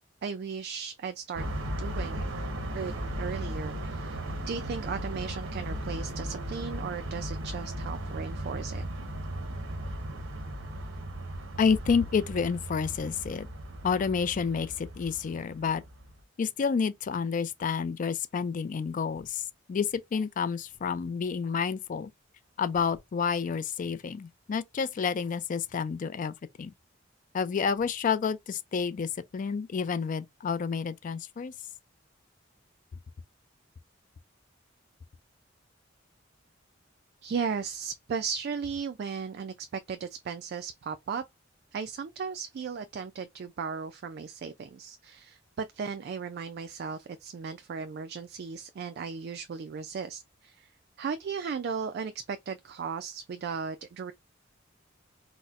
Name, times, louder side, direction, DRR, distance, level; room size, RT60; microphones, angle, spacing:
voice 1, 0.2-1.4 1.8-2.2 2.7-4.2 4.5-8.8 37.2-41.2 41.7-50.7 51.0-54.1, right 6 dB, 55° right, 0.3 m, -36 dB
sound 1, 1.4-16.2, right 1 dB, 90° right, 0.8 m, -36 dB
voice 2, 11.6-13.5 13.8-15.8 16.4-19.4 19.7-22.1 22.6-26.7 27.3-31.5, left 6 dB, 40° left, 0.3 m, -29 dB
4.1 x 2.1 x 2.4 m
head